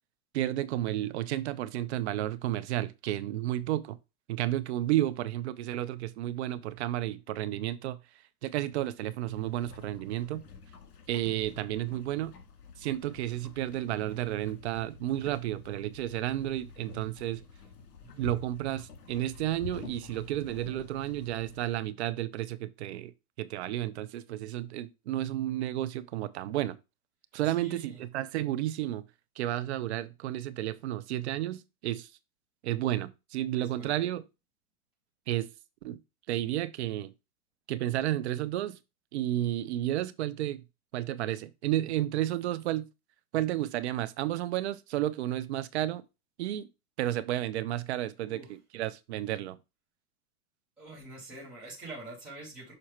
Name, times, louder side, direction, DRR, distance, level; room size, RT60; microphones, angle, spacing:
voice 1, 0.3-4.0 4.3-8.0 8.4-10.4 11.1-12.3 12.8-17.4 18.2-23.1 23.4-26.8 27.3-29.0 29.4-32.1 32.6-34.2 35.3-35.5 35.8-36.0 36.3-37.1 37.7-38.8 39.1-40.6 40.9-42.8 43.3-46.0 46.4-46.7 47.0-49.6, right 13 dB, 45° right, 0.6 m, -32 dB
sound 1, 9.3-21.8, left 5 dB, 80° left, 2.2 m, -49 dB
voice 2, 18.0-18.5 27.4-28.0 33.6-34.0 48.2-48.5 50.8-52.7, right 2 dB, 5° right, 0.3 m, -46 dB
6.6 x 4.2 x 4.4 m
supercardioid pair, 160°, 45 cm